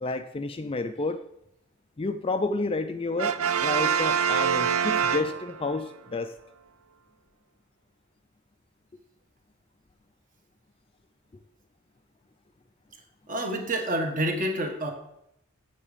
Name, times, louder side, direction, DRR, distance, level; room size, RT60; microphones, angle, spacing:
voice 1, 0.0-1.2 2.0-6.3, left 3 dB, 25° left, 9 dB, 0.4 m, -30 dB
Brass instrument, 3.2-5.8, right 7 dB, 80° right, 0.5 m, -25 dB
voice 2, 13.3-14.9, right 1 dB, 40° right, 4 dB, 1.5 m, -28 dB
8.5 x 7.2 x 5.0 m, 0.79 s
head